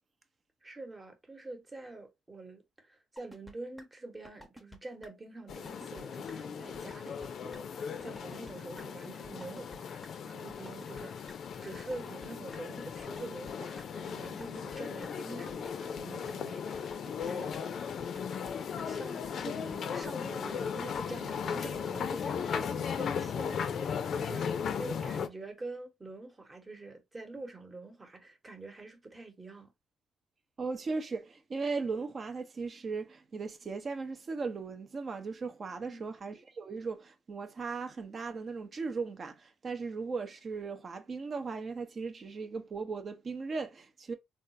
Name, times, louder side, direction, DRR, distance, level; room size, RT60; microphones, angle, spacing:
voice 1, 0.6-17.7 18.8-19.2 19.5-29.7 35.8-36.1, right 2 dB, 25° right, 1.1 m, -46 dB
sound 1, 3.2-3.5 3.8-3.9 4.2-4.8 5.0-5.1 5.5-6.0 6.3-6.4 6.7-7.3 7.5-7.6 8.0-8.5 8.8-8.9 9.2-9.8 10.0-10.1 10.5-11.3 11.7-12.6 13.0-13.8 14.2-14.8 15.0-15.1 15.5-16.0 16.3-16.4 16.7-17.3 17.5-17.6 18.0-18.5 18.8-18.9 19.2-19.8 20.0-20.1 20.5-21.0 21.3-21.4 21.7-21.8, equal, ahead, 0.8 m, -50 dB
sound 2, 5.5-25.3, left 7 dB, 60° left, 0.5 m, -37 dB
voice 2, 30.6-44.1, right 4 dB, 45° right, 0.7 m, -37 dB
3.6 x 2.4 x 2.6 m
cardioid pair, 90°, 0 cm